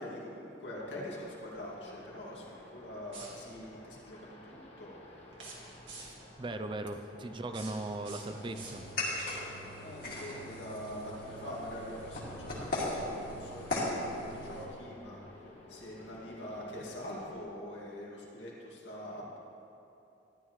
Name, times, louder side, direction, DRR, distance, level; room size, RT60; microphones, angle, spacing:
voice 1, 0.0-4.9 7.9-8.0 9.8-15.2 15.7-19.4, left 1 dB, 90° left, -5 dB, 2.3 m, -44 dB
sound 1, 0.8-17.4, left 1 dB, 35° left, 1.2 m, -54 dB
sound 2, 3.0-3.7 5.3-6.3 7.3-9.2, right 3 dB, 80° right, 2.0 m, -49 dB
voice 2, 6.0-8.8, right 2 dB, 25° right, 8 dB, 0.4 m, -39 dB
sound 3, 8.3-14.7, left 1 dB, 55° left, 2.3 m, -38 dB
13.0 x 10.5 x 3.1 m, 2.9 s
head